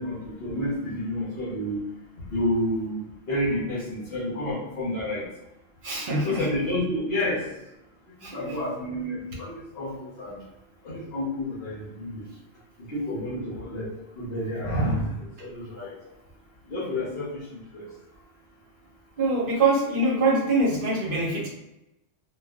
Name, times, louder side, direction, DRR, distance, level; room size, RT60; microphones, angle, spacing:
voice 1, 0.0-1.8 2.2-5.2 6.2-7.4 8.3-10.4 10.8-12.2 12.9-13.9 14.1-15.1 15.4-15.9 16.7-17.9, left 1 dB, 55° left, -9 dB, 1.0 m, -29 dB
voice 2, 5.8-6.5 8.2-8.6 15.4-15.5 19.2-21.5, right 2 dB, 50° right, -3 dB, 0.8 m, -24 dB
3.0 x 2.4 x 2.3 m, 0.91 s
omnidirectional pair, 1.3 m